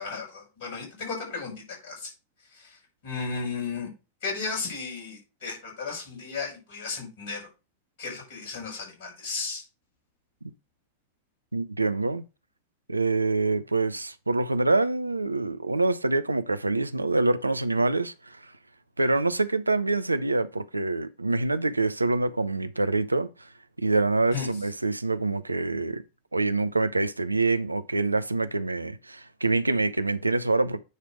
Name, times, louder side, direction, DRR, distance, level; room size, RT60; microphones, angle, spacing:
voice 1, 0.0-2.1 2.5-3.9 4.2-7.5 8.0-9.6 24.3-24.5, left 4 dB, 50° left, 5.6 m, -34 dB
voice 2, 11.5-12.2 12.9-18.5 19.0-23.5 23.8-26.0 26.3-30.8, right 3 dB, 85° right, 0.5 m, -26 dB
9.4 x 3.4 x 6.0 m
figure-of-eight pair, 90°, 0 cm